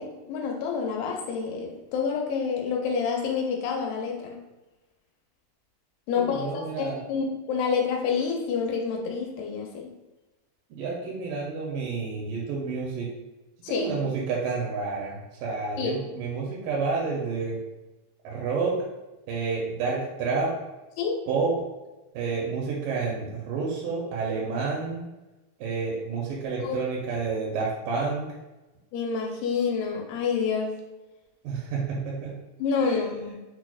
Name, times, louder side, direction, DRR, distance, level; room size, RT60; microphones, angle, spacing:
voice 1, 0.0-4.4 6.1-9.9 13.6-13.9 15.8-15.9 21.0-21.2 26.6-26.8 28.9-30.7 32.6-33.4, left 6 dB, 85° left, 1 dB, 2.3 m, -28 dB
voice 2, 6.2-7.0 10.7-13.1 13.7-17.6 18.2-18.7 19.3-20.5 21.3-21.5 22.1-25.0 25.6-28.3 31.4-32.3 32.8-33.1, right 4 dB, 80° right, -3 dB, 2.1 m, -29 dB
5.9 x 2.1 x 2.3 m, 1.1 s
omnidirectional pair, 4.0 m